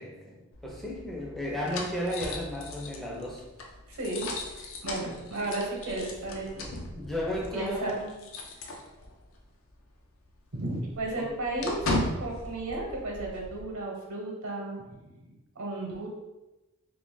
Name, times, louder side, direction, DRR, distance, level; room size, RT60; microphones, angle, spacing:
voice 1, 0.0-3.4 6.9-8.1 11.2-11.4, equal, ahead, -3 dB, 0.5 m, -34 dB
sound 1, 0.5-9.4 9.7-9.8 10.2-13.6, left 2 dB, 60° left, 0.5 m, -37 dB
voice 2, 3.9-6.8 7.5-7.9 10.5-15.2 15.6-16.1, right 2 dB, 70° right, -1 dB, 0.9 m, -34 dB
2.9 x 2.6 x 3.6 m, 1.0 s
head